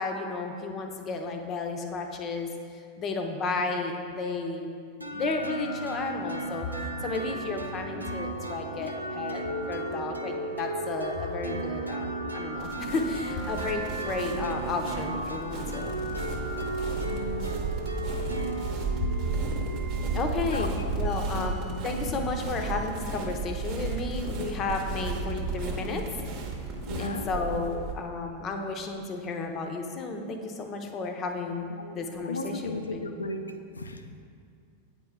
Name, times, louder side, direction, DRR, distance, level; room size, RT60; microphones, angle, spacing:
voice 1, 0.0-4.7 5.1-15.9 19.0-19.1 20.1-26.0 27.0-33.1, left 3 dB, 30° left, 4 dB, 0.6 m, -33 dB
sound 1, 5.0-20.6, right 2 dB, 85° right, 0.5 m, -35 dB
sound 2, 12.6-27.9, right 4 dB, 45° right, 0.9 m, -34 dB
sound 3, 13.3-15.0 15.8-17.6 18.4-20.3 21.1-22.9 23.8-24.0, right 1 dB, 20° right, 0.6 m, -49 dB
voice 2, 17.1-17.6 18.3-18.4 20.5-21.8 26.9-27.3 31.7-32.0 32.2-33.4 33.8-34.0, left 2 dB, 75° left, 7 dB, 0.4 m, -36 dB
8.6 x 4.4 x 3.4 m, 2.3 s
figure-of-eight pair, 90°, 0 cm